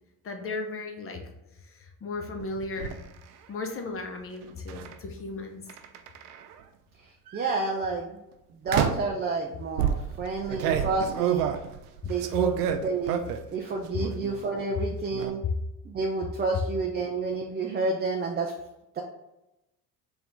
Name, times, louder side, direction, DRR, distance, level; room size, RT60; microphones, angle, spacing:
voice 1, 0.2-1.2 1.6-3.0 3.5-5.7, left 3 dB, 30° left, 4 dB, 1.0 m, -36 dB
sound 1, 2.4-3.0 4.7-4.9 5.7-6.5 7.3-7.6 8.7-9.2 9.8-13.5 13.9-14.4 14.7-15.3, right 9 dB, 80° right, 0.5 m, -29 dB
voice 2, 7.3-8.2 8.5-11.5 12.1-13.2 13.5-15.4 15.8-18.5 18.9-19.0, right 3 dB, 20° right, 1 dB, 0.5 m, -29 dB
4.8 x 2.7 x 3.6 m, 0.93 s
hypercardioid pair, 65°, 46 cm